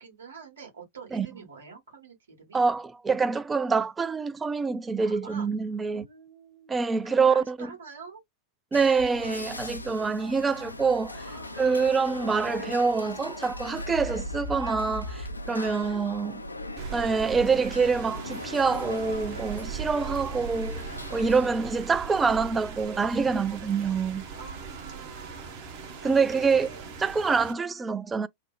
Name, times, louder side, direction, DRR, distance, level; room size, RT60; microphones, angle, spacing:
voice 1, 0.0-2.6 5.0-5.5 5.9-8.2 11.2-12.6 15.5-15.8 24.3-25.6 26.0-26.9, right 5 dB, 65° right, 1.6 m, -46 dB
voice 2, 2.5-6.0 6.7-7.7 8.7-11.2 11.6-16.4 16.9-24.2 26.0-26.7 27.0-28.3, right 5 dB, 15° right, 0.3 m, -26 dB
sound 1, 8.7-21.5, left 1 dB, 80° left, 0.4 m, -38 dB
Rain, 16.8-27.5, right 6 dB, 45° right, 0.9 m, -39 dB
3.2 x 2.0 x 2.3 m
figure-of-eight pair, 90°, 0 cm